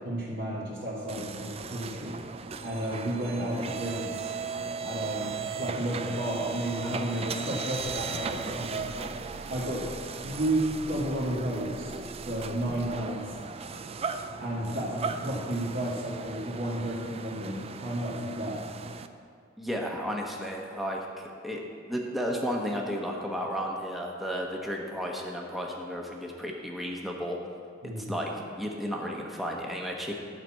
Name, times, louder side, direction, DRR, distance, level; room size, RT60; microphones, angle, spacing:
voice 1, 0.1-2.2 2.6-4.3 4.8-9.1 9.5-9.9 10.2-13.4 14.4-18.7 27.8-28.2, right 1 dB, 50° right, -9 dB, 1.8 m, -32 dB
sound 1, 1.1-19.1, right 5 dB, 30° right, 0.4 m, -37 dB
voice 2, 19.6-21.6 21.9-27.4 27.8-28.3 28.6-30.1, equal, ahead, -1 dB, 1.1 m, -33 dB
11.0 x 5.9 x 7.5 m, 2.2 s
head